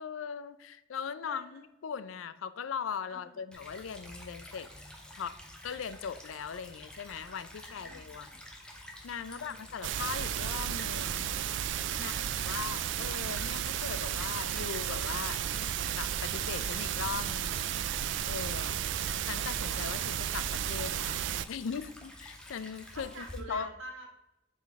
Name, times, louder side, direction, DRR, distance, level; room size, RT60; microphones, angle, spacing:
voice 1, 0.0-4.7 5.2-5.3 5.6-8.3 9.0-11.3 12.0-12.1 12.5-15.4 16.0-17.7 18.2-18.8 19.3-21.2 21.5-23.7, left 6 dB, 90° left, 14 dB, 0.4 m, -39 dB
voice 2, 1.2-1.6 3.1-3.4 7.6-8.4 9.2-9.7 11.9-12.8 22.9-24.1, right 1 dB, 85° right, 1 dB, 1.7 m, -49 dB
Stream / Trickle dribble, 3.5-23.4, left 1 dB, 5° left, 0.8 m, -49 dB
sound 1, 9.8-21.5, right 10 dB, 65° right, 0.3 m, -33 dB
7.4 x 3.9 x 3.5 m, 0.91 s
head